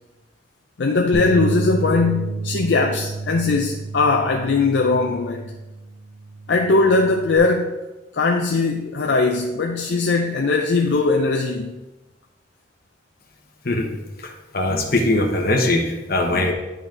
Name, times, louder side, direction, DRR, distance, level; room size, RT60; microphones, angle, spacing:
voice 1, 0.8-5.4 6.5-7.8 8.1-11.7, left 3 dB, 75° left, 2 dB, 0.5 m, -20 dB
Bass guitar, 1.1-7.4, right 3 dB, 25° right, 2.1 m, -30 dB
voice 2, 14.2-16.5, left 2 dB, 55° left, 2 dB, 1.2 m, -21 dB
10.5 x 4.1 x 3.8 m, 1.1 s
head